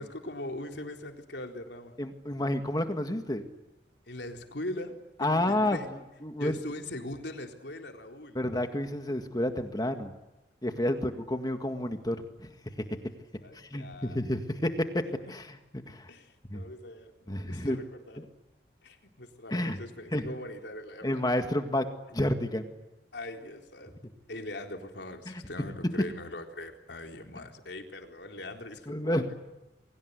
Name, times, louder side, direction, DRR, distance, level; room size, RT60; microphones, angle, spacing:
voice 1, 0.0-2.0 4.1-5.9 6.4-8.4 10.9-11.0 13.4-14.2 16.1-18.2 18.8-21.2 23.1-24.0 24.3-29.3, left 1 dB, 80° left, 4 dB, 4.0 m, -41 dB
voice 2, 2.0-3.5 5.2-5.8 6.2-6.5 8.4-10.1 10.6-12.5 13.5-16.1 16.5-16.6 17.3-17.8 18.2-18.3 19.5-19.8 20.1-20.3 21.0-21.9 22.1-22.7 25.3-25.4 28.9-29.3, left 1 dB, 20° left, 6 dB, 1.9 m, -30 dB
29.0 x 23.0 x 8.3 m, 1.0 s
head